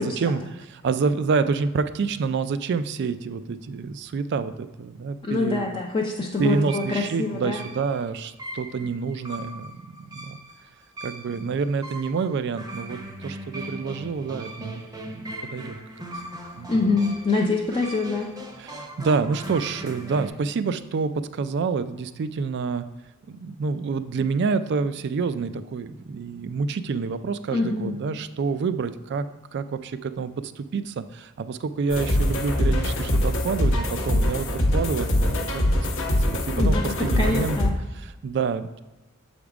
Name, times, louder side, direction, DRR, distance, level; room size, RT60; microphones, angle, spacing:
voice 1, 0.0-5.7 6.4-9.8 10.1-10.4 11.0-14.8 15.1-15.8 16.6-16.7 18.6-22.8 23.3-35.6 36.1-37.6 37.9-38.8, right 5 dB, 50° right, 13 dB, 0.3 m, -28 dB
voice 2, 5.2-7.6 16.7-18.3 27.5-27.9 36.5-37.8, left 3 dB, 25° left, -1 dB, 0.5 m, -25 dB
sound 1, 6.4-20.3, right 1 dB, 15° right, 0.7 m, -39 dB
sound 2, 31.9-37.7, left 1 dB, 60° left, 0.8 m, -23 dB
7.1 x 3.5 x 4.8 m, 1.1 s
head